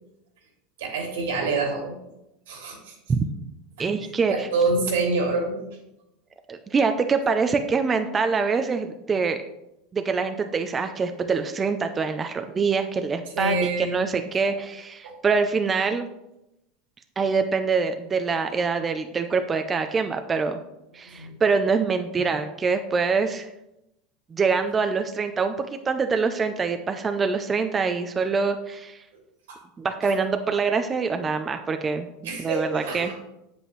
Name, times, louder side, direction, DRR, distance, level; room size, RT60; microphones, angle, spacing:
voice 1, 0.8-1.9 2.5-2.9 3.8-3.9 4.3-5.6 13.4-14.1 14.5-14.6 15.0-15.2 21.1-21.4 29.5-29.6 30.0-30.1 32.2-33.2, right 3 dB, 90° right, 1 dB, 2.7 m, -27 dB
voice 2, 3.8-4.5 6.5-9.4 9.9-16.1 17.2-20.6 20.9-23.5 24.3-29.0 29.8-32.1 32.4-33.1, right 5 dB, 20° right, 7 dB, 0.5 m, -25 dB
8.0 x 7.8 x 3.2 m, 0.88 s
supercardioid pair, 130°, 0 cm